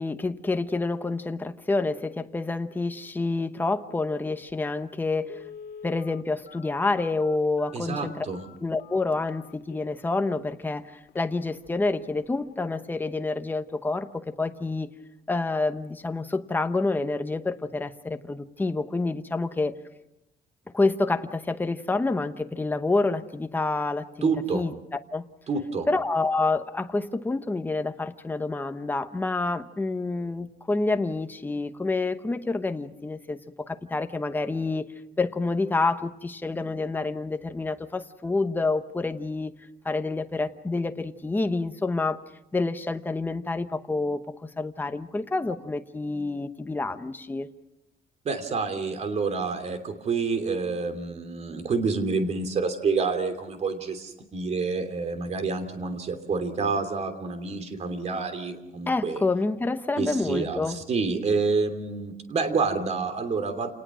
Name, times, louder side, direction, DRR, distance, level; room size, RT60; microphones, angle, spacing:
voice 1, 0.0-5.4 5.8-8.3 8.6-14.9 15.3-19.7 20.7-24.7 25.1-25.3 25.9-34.9 35.2-39.5 39.8-42.2 42.5-44.2 44.6-47.5 58.9-60.8, left 3 dB, 10° left, 8 dB, 1.0 m, -28 dB
Telephone, 4.5-4.6 5.2-10.1 10.6-10.7 11.1-11.3 11.6-11.9 12.2-12.3, left 7 dB, 80° left, 1.6 m, -46 dB
voice 2, 7.7-8.4 24.2-24.6 25.5-25.9 48.2-59.2 60.0-63.7, right 4 dB, 40° right, 8 dB, 3.0 m, -28 dB
28.5 x 19.5 x 6.2 m, 0.91 s
cardioid pair, 155°, 16 cm